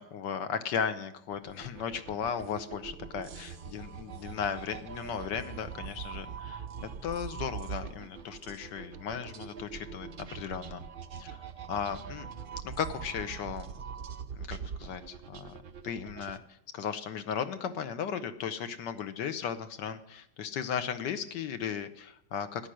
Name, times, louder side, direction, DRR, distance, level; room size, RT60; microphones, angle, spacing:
voice 1, 0.0-6.6 7.0-10.8 11.2-11.4 11.7-12.3 12.6-13.7 14.3-15.6 15.8-16.4 16.7-22.7, left 7 dB, 75° left, 10 dB, 1.6 m, -36 dB
sound 1, 1.3-16.4, right 7 dB, 75° right, 0.4 m, -43 dB
13.5 x 10.0 x 6.3 m, 0.78 s
omnidirectional pair, 2.0 m